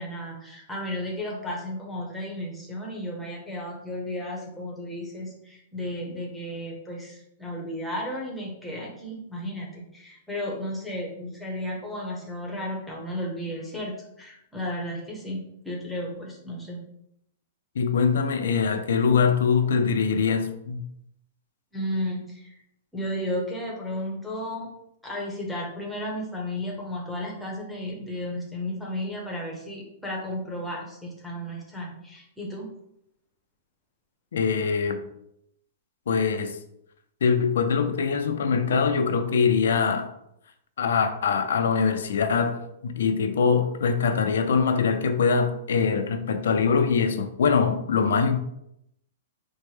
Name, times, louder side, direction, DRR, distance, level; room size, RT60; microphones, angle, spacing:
voice 1, 0.0-16.8 21.7-22.6 22.9-24.7 25.0-32.7, left 1 dB, ahead, 0.8 m, -33 dB
voice 2, 17.8-20.8 34.3-35.0 36.1-36.6 37.2-40.1 40.8-48.4, left 5 dB, 85° left, 0.4 m, -23 dB
4.3 x 2.1 x 3.2 m
hypercardioid pair, 160°, 0 cm